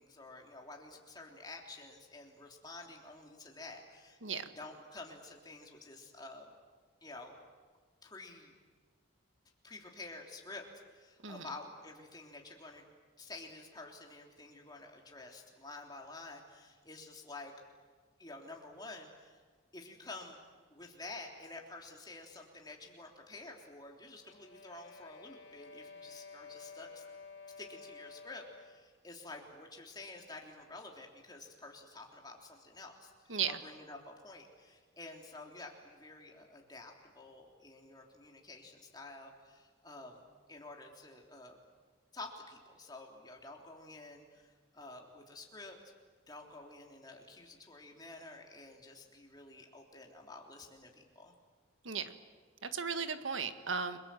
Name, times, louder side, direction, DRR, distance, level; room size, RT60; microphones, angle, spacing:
voice 1, 0.0-4.2 4.6-6.5 7.0-7.4 8.0-8.6 9.6-12.8 13.2-17.5 18.2-19.4 19.7-20.4 20.7-27.0 27.6-40.2 40.5-41.6 42.1-45.8 46.3-51.3, left 2 dB, 20° left, 1 dB, 3.3 m, -50 dB
sound 1, 24.2-28.9, left 4 dB, 65° left, 1.9 m, -52 dB
voice 2, 52.6-54.0, right 6 dB, 75° right, 9 dB, 1.6 m, -36 dB
30.0 x 22.0 x 7.7 m, 1.5 s
head